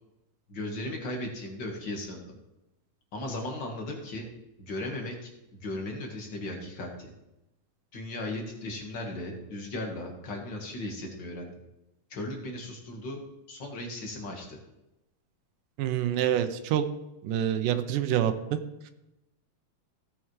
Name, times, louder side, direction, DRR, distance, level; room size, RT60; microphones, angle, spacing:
voice 1, 0.5-2.2 3.1-4.3 4.6-7.1 7.9-11.5 12.1-13.2 13.5-14.6, left 1 dB, 45° left, 1 dB, 1.8 m, -36 dB
voice 2, 15.8-16.9 17.2-18.6, right 10 dB, 85° right, 9 dB, 2.3 m, -26 dB
16.5 x 7.7 x 3.2 m, 0.92 s
omnidirectional pair, 3.8 m